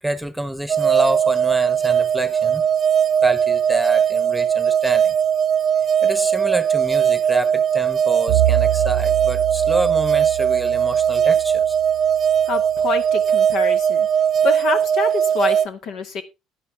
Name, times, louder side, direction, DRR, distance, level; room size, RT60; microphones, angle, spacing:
voice 1, 0.0-2.7 3.2-5.1 6.0-11.7, right 1 dB, 5° right, 1.3 m, -27 dB
sound 1, 0.7-15.7, right 8 dB, 40° right, 0.7 m, -19 dB
Bowed string instrument, 8.3-12.5, right 14 dB, 85° right, 0.9 m, -26 dB
voice 2, 12.5-14.1 14.4-16.2, left 5 dB, 65° left, 2.1 m, -26 dB
10.5 x 10.0 x 3.5 m
supercardioid pair, 90°, 0 cm